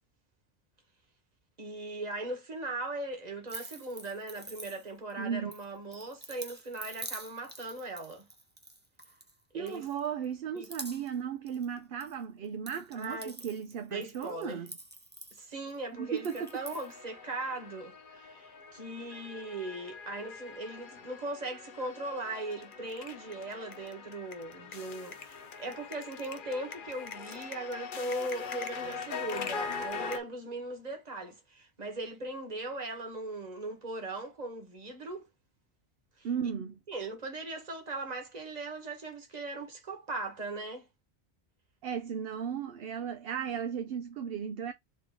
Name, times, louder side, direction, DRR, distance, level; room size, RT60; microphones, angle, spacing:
voice 1, 1.6-8.3 9.5-9.9 10.5-10.7 13.0-13.3 13.9-14.6 15.3-35.3 36.2-36.3 36.9-40.9, right 2 dB, 40° right, 1.4 m, -39 dB
sound 1, 3.5-5.1 5.5-9.3 9.7-10.2 10.6-12.1 12.4-15.7 16.2-16.9, right 2 dB, 10° right, 0.7 m, -47 dB
voice 2, 5.2-5.5 9.5-14.7 16.0-16.6 36.2-36.8 41.8-44.7, right 7 dB, 65° right, 0.8 m, -35 dB
sound 2, 16.0-30.2, left 5 dB, 55° left, 0.8 m, -42 dB
3.8 x 3.6 x 3.5 m
omnidirectional pair, 1.1 m